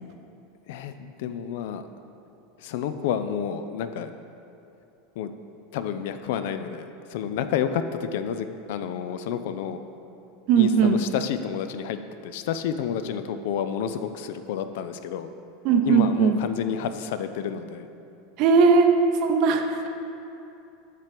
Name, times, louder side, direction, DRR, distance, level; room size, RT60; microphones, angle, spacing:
voice 1, 0.7-1.8 2.6-4.1 5.2-5.3 5.7-9.8 10.6-12.0 12.2-15.3 15.9-17.9, left 8 dB, 70° left, 10 dB, 0.3 m, -30 dB
voice 2, 10.5-11.0 15.6-16.4 18.4-19.9, right 5 dB, 55° right, 5 dB, 0.6 m, -19 dB
7.5 x 3.0 x 5.0 m, 2.8 s
hypercardioid pair, 105°, 0 cm